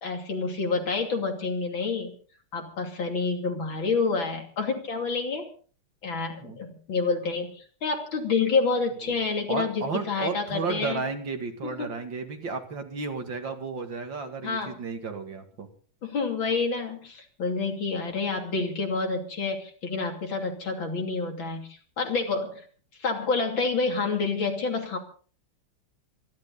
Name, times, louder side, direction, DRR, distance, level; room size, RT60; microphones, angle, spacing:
voice 1, 0.0-2.2 2.5-5.5 6.0-11.0 11.6-11.9 14.4-14.7 16.0-21.7 22.0-22.7 23.0-25.0, left 4 dB, 65° left, 3 dB, 3.5 m, -28 dB
voice 2, 9.5-15.7, right 4 dB, 60° right, 5 dB, 2.7 m, -33 dB
26.5 x 11.5 x 4.1 m, 0.43 s
omnidirectional pair, 2.4 m